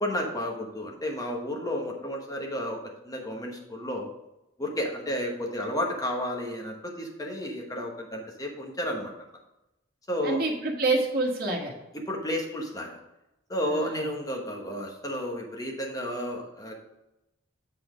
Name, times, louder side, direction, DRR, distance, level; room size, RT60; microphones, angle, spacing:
voice 1, 0.0-2.8 3.0-4.1 4.6-9.1 10.1-10.4 11.9-13.0 13.5-16.7, left 1 dB, 20° left, 1 dB, 1.2 m, -32 dB
voice 2, 10.2-11.7 13.7-14.1, right 2 dB, 50° right, 0 dB, 1.5 m, -27 dB
7.7 x 4.3 x 5.0 m, 0.92 s
head